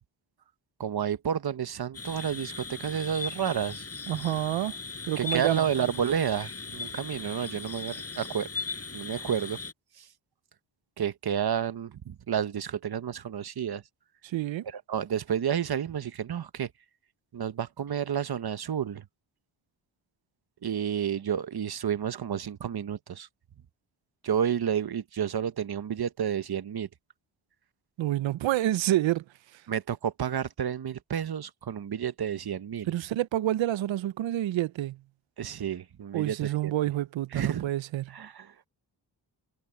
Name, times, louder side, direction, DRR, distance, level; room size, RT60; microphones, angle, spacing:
voice 1, 0.8-3.9 5.2-8.5 8.9-9.6 10.0-10.1 11.0-13.8 14.6-16.7 17.3-19.0 20.6-23.3 24.2-26.9 29.7-32.9 35.4-36.7 37.3-37.7 38.1-38.7, right 8 dB, 50° right, 1.0 m, -30 dB
sound 1, 1.9-9.7, left 4 dB, 30° left, 5.8 m, -38 dB
voice 2, 4.1-4.8 5.1-5.6 14.2-14.6 28.0-29.2 32.9-35.0 36.1-38.1, right 14 dB, 70° right, 0.6 m, -28 dB
wide cardioid pair, 120°, 47 cm